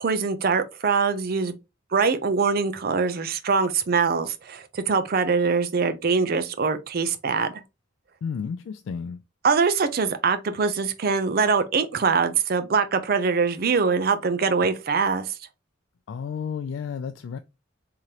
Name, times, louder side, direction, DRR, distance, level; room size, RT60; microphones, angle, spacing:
voice 1, 0.0-1.6 1.9-7.6 9.4-15.4, right 5 dB, 50° right, 0.5 m, -23 dB
voice 2, 8.2-9.2 16.1-17.4, left 6 dB, 75° left, 0.3 m, -32 dB
3.7 x 2.9 x 3.1 m
head